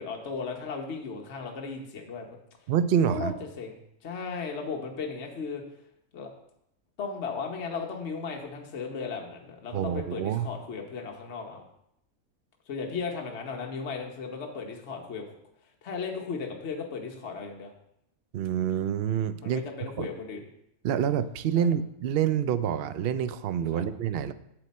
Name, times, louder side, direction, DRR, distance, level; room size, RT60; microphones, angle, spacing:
voice 1, 0.0-2.4 3.1-3.8 4.0-5.6 6.1-6.3 7.0-11.6 12.7-15.3 15.8-17.7 19.4-20.4 21.6-21.7 23.7-23.8, left 5 dB, 50° left, 1 dB, 1.3 m, -36 dB
voice 2, 2.7-3.3 9.7-10.5 18.3-19.6 20.0-20.1 20.8-24.3, right 9 dB, 70° right, 13 dB, 0.5 m, -27 dB
7.9 x 7.8 x 4.2 m, 0.76 s
omnidirectional pair, 1.6 m